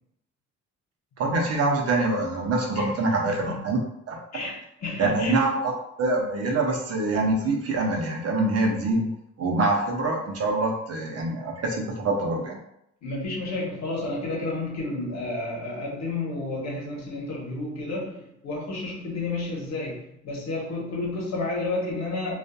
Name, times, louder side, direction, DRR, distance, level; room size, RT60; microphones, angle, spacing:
voice 1, 1.2-4.2 5.0-5.7 6.0-9.1 9.4-12.6, right 2 dB, 55° right, 0 dB, 0.7 m, -25 dB
voice 2, 3.2-3.6 4.3-5.4 13.0-22.3, left 2 dB, 60° left, -3 dB, 1.0 m, -31 dB
2.6 x 2.4 x 2.3 m, 0.75 s
cardioid pair, 90°, 30 cm